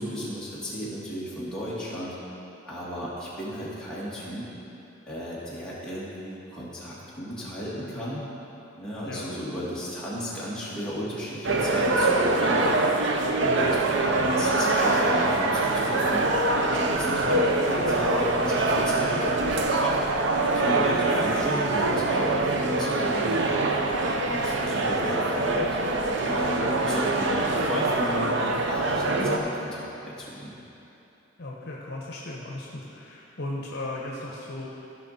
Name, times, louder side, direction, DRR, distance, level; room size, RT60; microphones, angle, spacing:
voice 1, 0.0-2.2 2.6-4.5 5.1-8.2 8.7-12.8 13.4-16.3 16.7-20.0 20.5-23.7 24.2-25.8 26.2-28.3 28.6-30.5, equal, 5° left, -10 dB, 2.5 m, -34 dB
sound 1, 11.4-29.4, right 2 dB, 65° right, 0.7 m, -24 dB
voice 2, 13.4-14.4 17.2-17.4 26.7-26.8 29.2-29.5 31.4-34.7, left 2 dB, 60° left, -4 dB, 1.2 m, -36 dB
15.5 x 6.0 x 4.4 m, 3.0 s
head